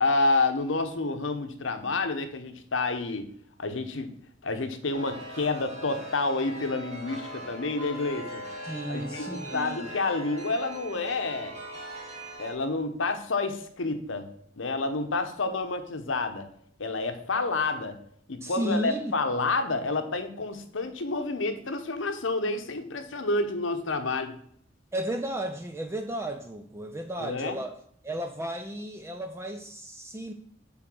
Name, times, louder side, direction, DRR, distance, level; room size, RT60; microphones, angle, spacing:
voice 1, 0.0-3.3 3.6-4.1 4.4-8.4 8.9-11.6 12.4-14.3 14.5-16.5 16.8-18.0 18.3-24.4 27.2-27.6, left 3 dB, 75° left, 8 dB, 0.9 m, -29 dB
Chime, 4.9-12.5, equal, 35° right, 2.1 m, -40 dB
voice 2, 8.6-9.9 18.4-19.1 24.9-30.3, right 1 dB, 15° right, 6 dB, 0.4 m, -34 dB
7.6 x 4.0 x 6.2 m, 0.64 s
head